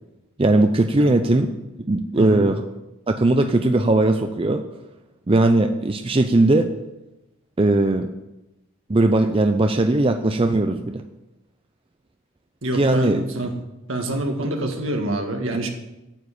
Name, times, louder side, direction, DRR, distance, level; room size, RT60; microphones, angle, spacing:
voice 1, 0.4-1.5 1.8-2.6 3.1-4.6 5.3-6.7 7.6-8.1 8.9-11.0 12.7-13.2, right 2 dB, 25° right, 6 dB, 0.5 m, -19 dB
voice 2, 2.2-2.5 12.6-13.6 13.9-15.7, right 1 dB, 70° right, 3 dB, 1.8 m, -26 dB
9.2 x 7.2 x 8.4 m, 0.96 s
head